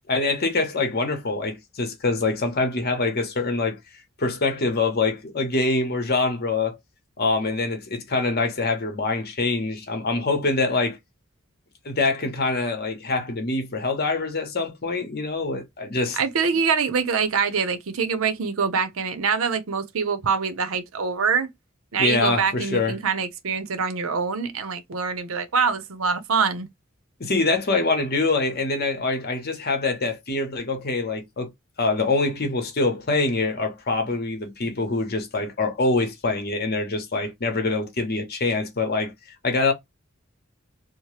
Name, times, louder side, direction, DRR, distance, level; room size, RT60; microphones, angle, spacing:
voice 1, 0.1-3.8 4.2-6.8 7.2-11.0 11.8-16.2 22.0-23.0 27.2-31.5 31.8-39.1 39.4-39.7, left 3 dB, 50° left, 0.9 m, -24 dB
voice 2, 16.2-21.5 21.9-26.7, right 5 dB, 85° right, 0.6 m, -24 dB
2.8 x 2.0 x 3.1 m
head